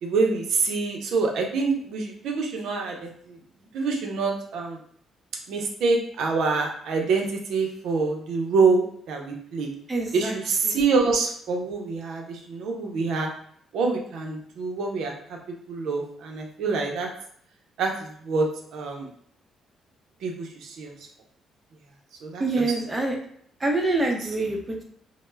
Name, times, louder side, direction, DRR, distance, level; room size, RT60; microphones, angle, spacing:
voice 1, 0.0-3.4 3.7-4.8 5.5-9.7 10.1-13.3 13.7-15.1 15.5-17.1 17.8-18.5 18.7-19.1 20.2-20.9 22.2-22.4, right 4 dB, 80° right, 1 dB, 0.5 m, -26 dB
voice 2, 9.9-10.3 10.6-10.8 22.4-23.2 23.6-24.8, right 2 dB, 20° right, 1 dB, 0.6 m, -26 dB
2.2 x 2.0 x 3.2 m, 0.63 s
cardioid pair, 90°, 0 cm